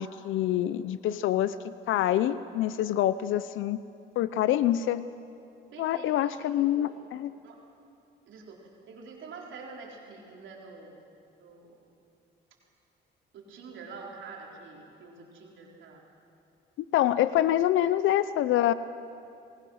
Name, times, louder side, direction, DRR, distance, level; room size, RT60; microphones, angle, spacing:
voice 1, 0.0-3.8 4.2-5.0 5.8-7.3 16.9-18.7, left 12 dB, 80° left, 15 dB, 0.6 m, -26 dB
voice 2, 5.7-7.0 7.4-7.6 8.3-8.6 8.9-11.0 11.4-11.9 13.3-16.0, right 4 dB, 75° right, -2 dB, 3.9 m, -46 dB
24.0 x 20.0 x 6.4 m, 2.7 s
cardioid pair, 90°, 20 cm